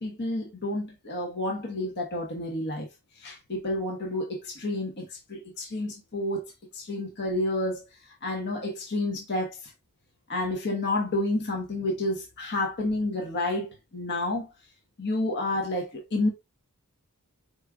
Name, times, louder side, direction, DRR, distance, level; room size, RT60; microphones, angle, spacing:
voice 1, 0.0-2.9 3.2-6.5 6.7-7.8 8.2-9.7 10.3-14.5 15.0-16.3, left 2 dB, 55° left, 1.3 m, -30 dB
4.7 x 4.3 x 2.3 m
head